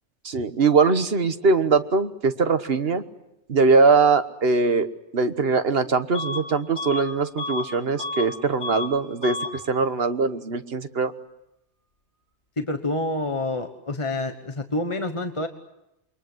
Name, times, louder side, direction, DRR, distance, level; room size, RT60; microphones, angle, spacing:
voice 1, 0.2-3.0 3.5-4.9 5.1-9.4 9.7-11.1, right 4 dB, 60° right, 10 dB, 1.5 m, -21 dB
Bus / Alarm, 6.1-6.5 6.7-8.3 8.6-8.9 9.2-9.6, left 2 dB, 85° left, 5.5 m, -31 dB
voice 2, 12.6-15.5, left 2 dB, 30° left, 6 dB, 1.2 m, -27 dB
28.5 x 23.0 x 7.9 m, 0.87 s
omnidirectional pair, 1.1 m